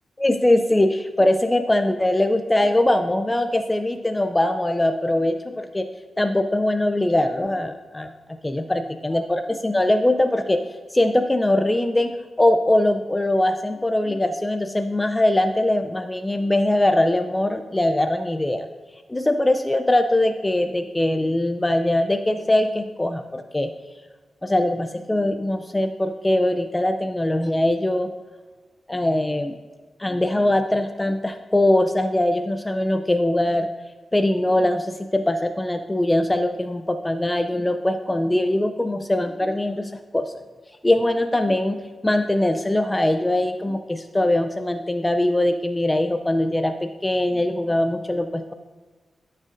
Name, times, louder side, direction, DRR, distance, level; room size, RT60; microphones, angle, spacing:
voice 1, 0.2-5.9 6.2-8.1 8.4-10.6 10.9-18.7 19.1-23.7 24.4-28.1 28.9-29.6 30.0-33.7 34.1-40.3 40.8-41.8 42.0-48.5, left 1 dB, 15° left, 7 dB, 0.4 m, -21 dB
13.5 x 6.4 x 2.6 m, 1.4 s
cardioid pair, 75°, 0 cm